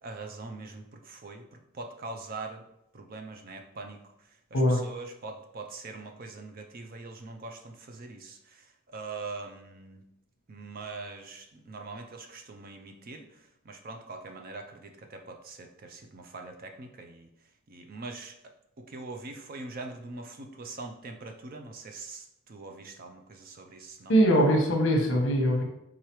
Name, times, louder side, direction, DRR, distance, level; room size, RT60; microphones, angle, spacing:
voice 1, 0.0-2.6 2.9-4.0 4.5-10.0 10.5-17.3 17.7-18.4 18.8-24.1, right 3 dB, 40° right, 5 dB, 0.4 m, -42 dB
voice 2, 24.1-25.6, equal, 55° left, 2 dB, 0.9 m, -22 dB
4.7 x 3.7 x 3.0 m, 0.83 s
head